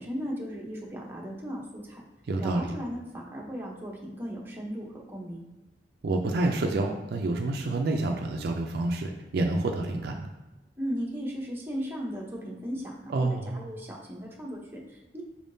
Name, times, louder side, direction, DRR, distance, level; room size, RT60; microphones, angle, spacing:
voice 1, 0.0-2.0 2.4-5.4 10.8-15.2, equal, 15° right, -3 dB, 0.7 m, -36 dB
voice 2, 2.3-2.7 6.0-10.3 13.1-13.6, right 2 dB, 60° right, 3 dB, 0.4 m, -28 dB
4.4 x 3.5 x 2.6 m, 1.1 s
head